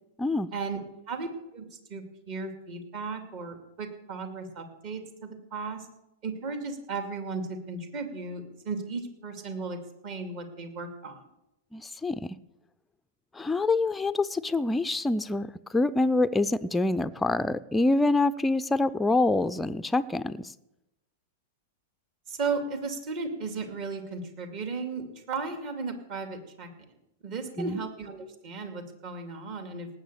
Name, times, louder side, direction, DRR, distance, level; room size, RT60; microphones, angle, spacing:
voice 1, 0.2-0.5 11.7-12.4 13.3-20.5 27.6-27.8, left 2 dB, 10° left, 0.5 m, -26 dB
voice 2, 1.9-5.9 6.2-9.8 10.0-11.2 22.3-26.7 27.2-29.9, right 4 dB, 40° right, 2.4 m, -35 dB
18.0 x 7.8 x 6.9 m
figure-of-eight pair, 100°, 0 cm